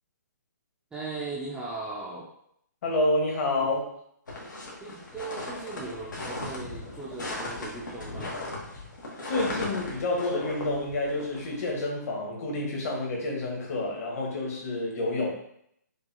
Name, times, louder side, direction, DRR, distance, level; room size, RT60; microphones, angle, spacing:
voice 1, 0.9-2.3 3.6-3.7 4.8-8.4, right 3 dB, 5° right, -6 dB, 0.5 m, -38 dB
voice 2, 2.8-3.8 9.3-15.3, left 2 dB, 50° left, -1 dB, 1.4 m, -28 dB
sound 1, 4.3-11.8, left 2 dB, 85° left, 1.3 m, -37 dB
5.3 x 2.4 x 2.8 m, 0.71 s
hypercardioid pair, 150°, 10 cm